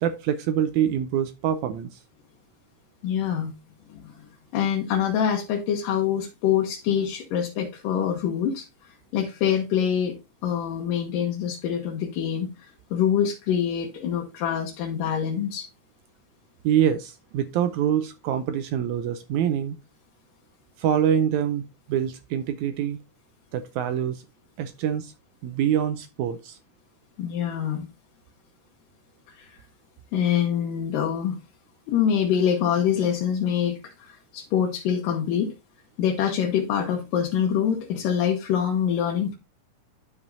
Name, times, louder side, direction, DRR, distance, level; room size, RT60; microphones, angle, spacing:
voice 1, 0.0-2.0 16.6-19.8 20.8-21.6 21.9-23.0 23.5-24.2 24.6-25.1 25.4-26.6, right 9 dB, 80° right, 1.8 m, -25 dB
voice 2, 3.0-3.5 3.9-4.1 4.5-8.6 9.1-10.1 10.4-15.7 27.2-27.9 29.3-29.6 30.1-31.4 31.9-35.5 36.0-39.3, left 8 dB, 85° left, 2.7 m, -25 dB
12.5 x 5.0 x 2.6 m
omnidirectional pair, 3.7 m